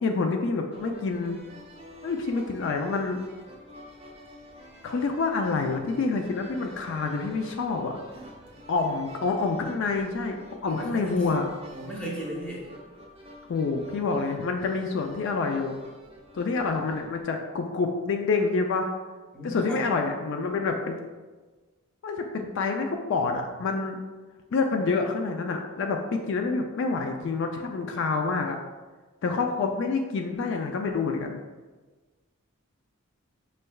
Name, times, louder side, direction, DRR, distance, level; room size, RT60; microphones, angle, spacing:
voice 1, 0.0-1.4 2.0-3.2 4.8-7.9 8.7-11.4 13.5-15.8 16.3-18.9 19.4-21.0 22.0-24.0 24.5-28.6 29.2-31.4, left 4 dB, 60° left, 3 dB, 0.3 m, -27 dB
sound 1, 0.7-17.2, equal, 30° right, 0.6 m, -48 dB
voice 2, 10.7-11.2 11.7-12.6 19.3-19.8, right 1 dB, 5° left, -4 dB, 0.8 m, -36 dB
5.3 x 3.2 x 2.2 m, 1.3 s
head